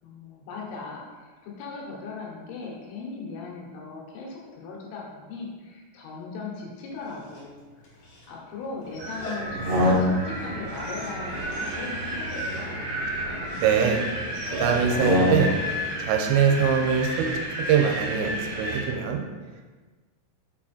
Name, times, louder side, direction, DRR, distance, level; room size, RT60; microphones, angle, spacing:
voice 1, 0.0-7.6 7.9-8.0 8.3-12.9, left 4 dB, 75° left, -2 dB, 3.6 m, -38 dB
Dog, 6.9-15.2, equal, 60° left, 2.2 m, -42 dB
Wind, 9.0-18.9, equal, 40° right, 2.3 m, -32 dB
sound 1, 9.4-10.5 11.8-13.4 14.7-15.7, left 1 dB, 70° right, 2.7 m, -26 dB
voice 2, 13.6-14.0 14.6-15.5 16.0-17.3 17.7-19.2, right 7 dB, 85° right, 2 dB, 3.3 m, -22 dB
7.4 x 4.8 x 4.3 m, 1.3 s
omnidirectional pair, 5.8 m